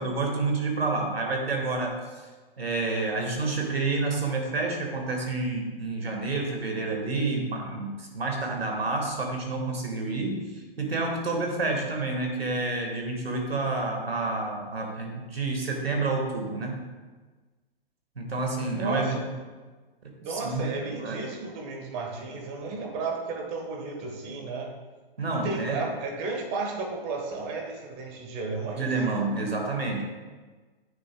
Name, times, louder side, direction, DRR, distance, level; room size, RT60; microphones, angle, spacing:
voice 1, 0.0-1.9 2.6-10.5 10.8-16.7 18.2-19.3 20.3-20.7 21.0-21.2 25.2-25.9 28.8-30.0, right 3 dB, 90° right, 1 dB, 1.7 m, -29 dB
voice 2, 18.7-19.2 20.2-24.7 25.3-28.9, right 3 dB, 30° right, 1 dB, 1.4 m, -33 dB
9.5 x 6.4 x 2.3 m, 1.3 s
hypercardioid pair, 125°, 29 cm